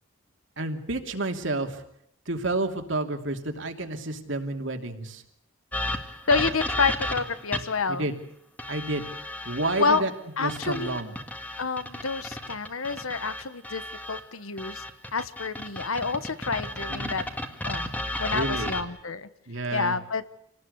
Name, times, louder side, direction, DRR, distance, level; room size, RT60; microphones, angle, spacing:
voice 1, 0.6-1.8 2.3-5.2 7.9-8.1 8.7-9.1 9.4-10.1 10.4-11.1 16.9-17.2 18.3-18.7 19.5-20.0, right 2 dB, 65° right, 5 dB, 2.8 m, -30 dB
sound 1, 5.7-7.9 8.6-10.0 10.5-14.2 14.6-18.8, left 1 dB, 10° left, 1.9 m, -33 dB
voice 2, 6.3-8.1 9.8-10.0 10.4-11.0 11.6-13.8 14.1-14.8 15.1-17.2 17.6-17.9 18.2-19.3 19.7-20.2, left 4 dB, 85° left, 14 dB, 1.4 m, -28 dB
27.5 x 19.0 x 8.1 m, 0.72 s
head